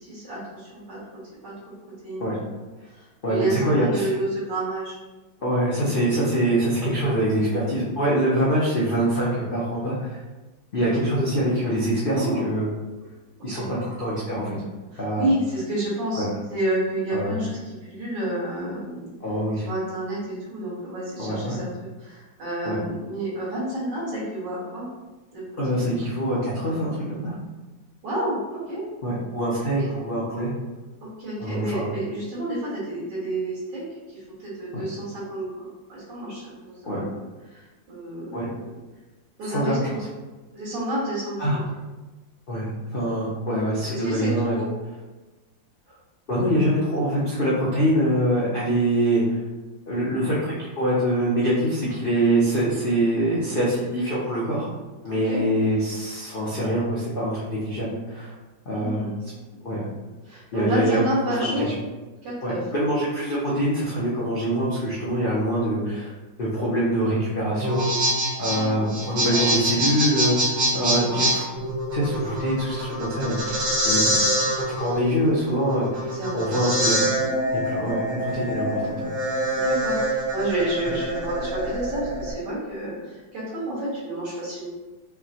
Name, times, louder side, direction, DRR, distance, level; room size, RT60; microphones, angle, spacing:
voice 1, 0.0-1.0 1.4-1.5 2.0-2.3 2.9-5.0 5.4-5.5 12.1-12.5 13.6-13.7 14.9-19.1 19.6-21.7 22.0-24.8 25.3-25.4 25.7-25.9 28.0-28.8 29.6-29.9 31.0-33.8 34.1-37.1 37.5-38.8 39.4-40.0 40.5-41.6 43.9-44.7 55.3-55.4 58.7-59.2 60.2-61.7 62.2-62.6 68.7-69.5 70.8-71.3 76.1-76.7 77.1-77.2 79.6-84.7, right 1 dB, 65° right, -8 dB, 2.2 m, -30 dB
voice 2, 3.2-4.1 5.4-10.2 10.7-12.7 13.4-14.6 15.0-15.2 16.1-16.2 17.1-17.4 19.2-19.7 21.2-21.6 22.6-22.8 25.6-27.3 29.0-30.5 31.4-31.9 34.7-34.8 36.8-37.0 38.3-38.5 39.4-40.1 41.4-41.6 42.5-42.6 42.9-44.6 46.3-49.4 49.9-54.7 55.0-58.3 58.7-59.1 59.6-59.8 60.5-61.0 61.6-61.7 62.4-66.1 66.4-68.1 68.4-71.4 71.9-74.1 74.5-77.0 77.6-79.1, right 1 dB, 85° left, -7 dB, 0.4 m, -24 dB
sound 1, 67.6-82.3, right 1 dB, 90° right, 1.8 m, -25 dB
5.5 x 2.2 x 2.8 m, 1.2 s
omnidirectional pair, 2.1 m